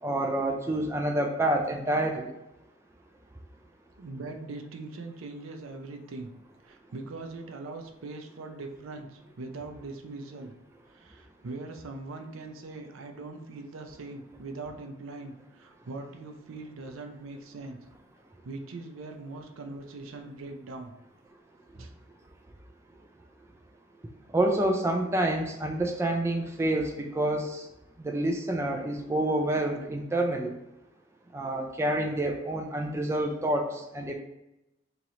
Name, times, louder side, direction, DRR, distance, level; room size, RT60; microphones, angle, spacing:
voice 1, 0.0-2.3 24.3-27.6 28.0-30.5 31.3-34.1, right 1 dB, 15° right, 2 dB, 0.3 m, -28 dB
voice 2, 4.0-6.3 6.6-10.5 10.9-17.8 18.4-20.9 21.7-21.9, right 3 dB, 90° right, 5 dB, 0.5 m, -41 dB
3.0 x 3.0 x 3.7 m, 0.90 s
head